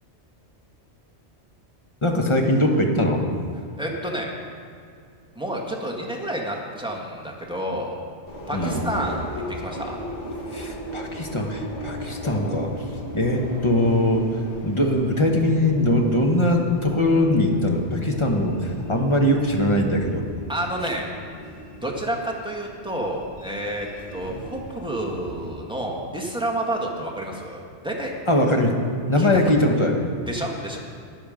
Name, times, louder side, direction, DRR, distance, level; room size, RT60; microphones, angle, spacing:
voice 1, 2.0-3.2 8.5-8.8 10.5-14.3 14.6-20.3 28.3-30.0, left 1 dB, 25° left, 2 dB, 1.3 m, -21 dB
voice 2, 3.8-4.3 5.3-8.0 8.5-10.0 20.5-21.1 21.8-23.9 24.1-28.1 29.2-29.3 30.3-30.8, right 1 dB, 5° right, -1 dB, 1.6 m, -29 dB
Subway metro underground, 8.3-25.5, equal, 80° left, 2.0 m, -36 dB
13.0 x 10.0 x 5.1 m, 2.3 s
omnidirectional pair, 1.2 m